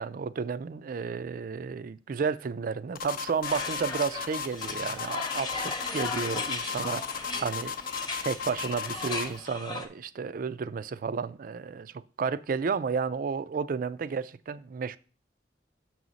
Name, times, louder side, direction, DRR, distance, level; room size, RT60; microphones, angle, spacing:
voice 1, 0.0-7.7 8.2-15.0, right 5 dB, 50° right, 0.4 m, -32 dB
sound 1, 3.0-9.4, left 6 dB, 50° left, 0.6 m, -35 dB
sound 2, 3.4-9.9, left 3 dB, 25° left, 0.8 m, -37 dB
6.5 x 6.2 x 4.0 m
head